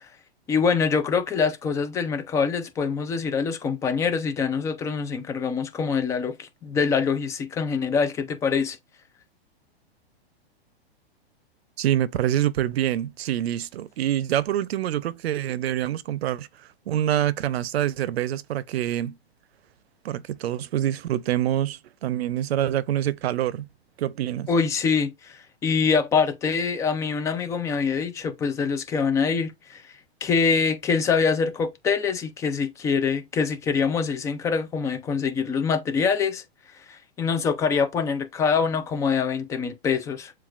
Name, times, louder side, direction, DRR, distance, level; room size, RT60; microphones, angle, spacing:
voice 1, 0.5-8.8 24.5-29.8 30.2-36.4 36.9-40.3, left 5 dB, 10° left, 0.4 m, -24 dB
voice 2, 11.8-16.5 16.9-19.2 20.0-23.7 24.0-24.5, right 12 dB, 70° right, 0.6 m, -26 dB
7.3 x 2.5 x 2.4 m
hypercardioid pair, 135°, 32 cm